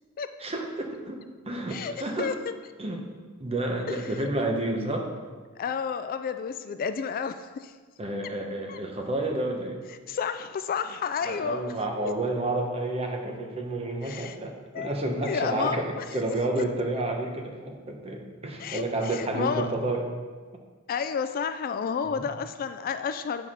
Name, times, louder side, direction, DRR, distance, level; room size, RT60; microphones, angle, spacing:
voice 1, 0.4-2.3 2.8-3.0 3.4-5.1 8.0-9.8 11.2-20.1 22.0-22.3, right 2 dB, 30° right, 2 dB, 1.0 m, -30 dB
voice 2, 5.6-7.7 8.7-8.8 10.1-11.7 12.0-12.1 14.0-14.4 14.7-14.9 15.2-16.0 16.6-16.7 18.6-19.7 20.9-23.5, left 6 dB, 45° left, 10 dB, 0.3 m, -31 dB
7.9 x 5.2 x 5.5 m, 1.5 s
head